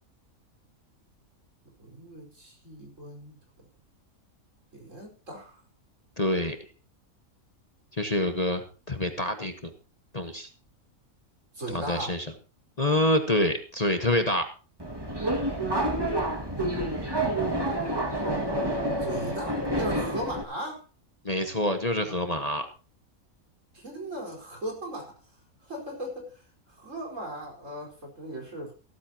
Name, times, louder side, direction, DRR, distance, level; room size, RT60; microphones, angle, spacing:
voice 1, 1.8-3.7 4.7-5.6 11.5-12.2 19.0-20.8 23.7-25.1 25.6-26.4 26.7-28.7, right 1 dB, 60° right, 0 dB, 5.2 m, -38 dB
voice 2, 6.2-6.6 8.0-9.7 10.1-10.5 11.7-12.3 12.8-14.5 21.2-22.7, left 1 dB, 30° left, 6 dB, 1.3 m, -26 dB
Subway metro underground, 14.8-20.4, right 1 dB, 15° right, 2.1 m, -28 dB
15.5 x 13.5 x 2.9 m, 0.35 s
omnidirectional pair, 1.5 m